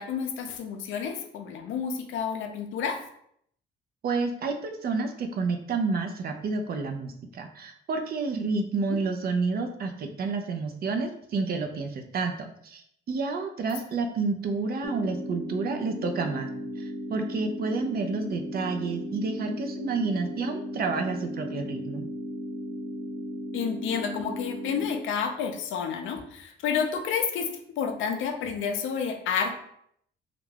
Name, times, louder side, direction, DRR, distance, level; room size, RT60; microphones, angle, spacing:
voice 1, 0.0-3.0 8.9-9.0 23.5-27.5 27.8-29.6, left 6 dB, 80° left, 5 dB, 0.5 m, -30 dB
voice 2, 4.0-16.5 16.8-22.1, right 4 dB, 50° right, 5 dB, 0.5 m, -30 dB
sound 1, 14.8-24.8, equal, ahead, 0.4 m, -36 dB
2.4 x 2.2 x 3.2 m, 0.69 s
cardioid pair, 90°, 20 cm